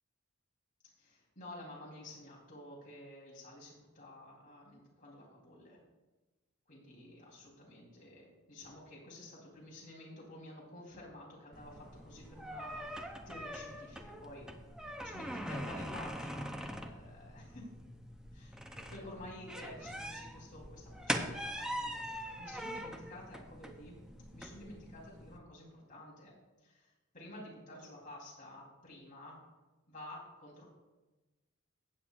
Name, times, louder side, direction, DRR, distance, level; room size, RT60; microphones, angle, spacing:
voice 1, 1.0-5.8 6.7-14.5 15.0-17.7 18.3-24.0 24.3-26.3 26.6-29.4 29.9-30.7, left 1 dB, 40° left, -4 dB, 3.8 m, -51 dB
sound 1, 11.5-25.4, equal, 5° right, 0.6 m, -43 dB
15.5 x 8.7 x 2.6 m, 1.1 s
head